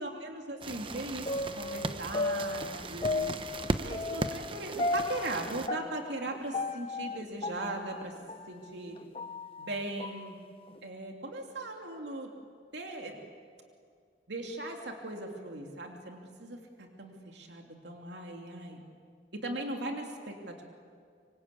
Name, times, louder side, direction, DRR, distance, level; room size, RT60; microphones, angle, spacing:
voice 1, 0.0-3.3 3.8-8.2 8.5-9.0 9.6-10.4 10.8-12.3 12.7-13.2 14.3-18.8 19.3-20.6, right 2 dB, 90° right, 2 dB, 2.8 m, -39 dB
sound 1, 0.6-5.7, right 2 dB, 30° right, 0.8 m, -37 dB
sound 2, 1.3-8.5 8.9-10.3 10.7-10.8, left 2 dB, 30° left, 0.8 m, -35 dB
25.5 x 25.5 x 8.5 m, 2.2 s
head